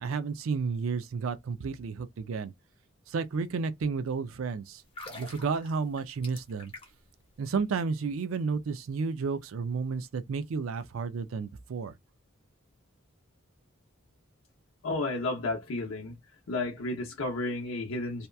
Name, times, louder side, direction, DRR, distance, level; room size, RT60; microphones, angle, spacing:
voice 1, 0.0-2.5 3.1-4.8 5.1-6.7 7.4-11.9, right 5 dB, 85° right, 0.4 m, -32 dB
sound 1, 4.8-7.1 7.4-7.6, left 2 dB, 30° left, 0.9 m, -46 dB
voice 2, 14.8-16.2 16.5-18.3, left 2 dB, 80° left, 0.6 m, -32 dB
2.8 x 2.2 x 2.3 m
head